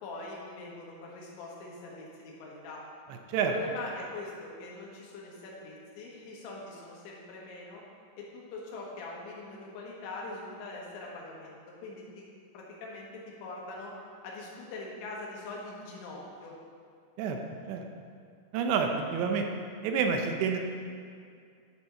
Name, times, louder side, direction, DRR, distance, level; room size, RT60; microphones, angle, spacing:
voice 1, 0.0-2.8 3.3-7.8 8.2-12.2 12.5-13.9 14.2-16.5, left 2 dB, 80° left, -3 dB, 3.7 m, -42 dB
voice 2, 18.5-19.5 19.8-20.6, right 6 dB, 80° right, 4 dB, 2.8 m, -28 dB
10.5 x 5.9 x 4.3 m, 2.3 s
omnidirectional pair, 5.1 m